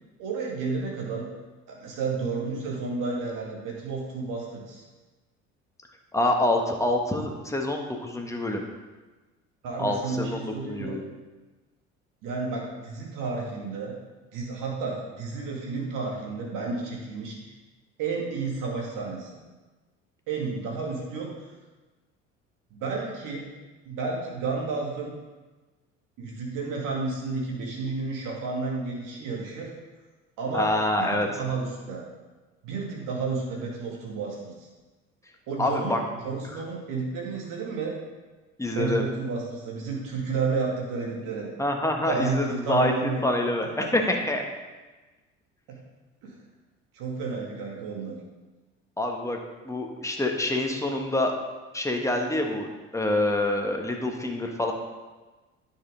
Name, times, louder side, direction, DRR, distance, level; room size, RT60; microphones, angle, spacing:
voice 1, 0.2-1.3 1.7-4.8 9.6-11.0 12.2-13.9 14.3-17.3 18.0-19.4 20.3-21.3 22.7-23.5 23.9-25.1 26.2-29.7 30.4-30.7 31.0-32.0 32.6-34.5 35.5-36.0 36.2-37.9 38.7-41.5 42.1-43.9 45.7-45.8 46.2-46.4 46.9-48.2, right 4 dB, 55° right, -2 dB, 2.5 m, -31 dB
voice 2, 6.1-8.6 9.8-11.0 30.5-31.3 35.6-36.0 38.6-39.0 41.6-44.4 49.0-49.4 49.6-51.3 51.7-54.7, left 1 dB, 10° left, 2 dB, 1.4 m, -26 dB
10.0 x 6.6 x 3.9 m, 1.2 s
figure-of-eight pair, 60°, 38 cm